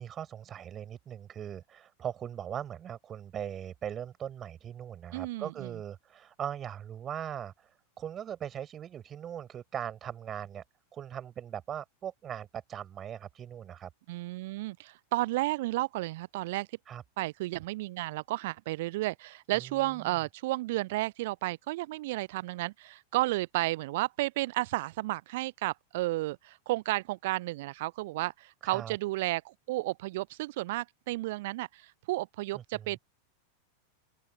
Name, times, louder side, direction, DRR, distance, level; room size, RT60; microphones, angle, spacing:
voice 1, 0.0-7.7 8.0-10.6 10.9-13.9 16.9-17.0 19.5-20.2 28.6-29.0 32.5-32.9, right 9 dB, 25° right, 5.6 m, -40 dB
voice 2, 5.1-5.7 14.1-16.8 17.2-29.4 29.7-33.0, right 19 dB, 50° right, 0.5 m, -32 dB
open air
figure-of-eight pair, 90°, 0 cm